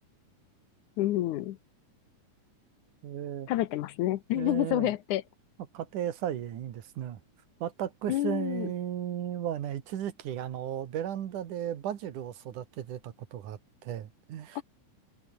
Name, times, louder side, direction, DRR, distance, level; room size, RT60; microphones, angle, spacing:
voice 1, 1.0-1.6 3.5-5.2 8.1-8.7 14.6-14.7, left 14 dB, 75° left, 2.3 m, -28 dB
voice 2, 3.0-3.5 4.3-4.9 5.7-7.2 7.6-14.6, right 10 dB, 75° right, 3.1 m, -35 dB
omnidirectional pair, 3.7 m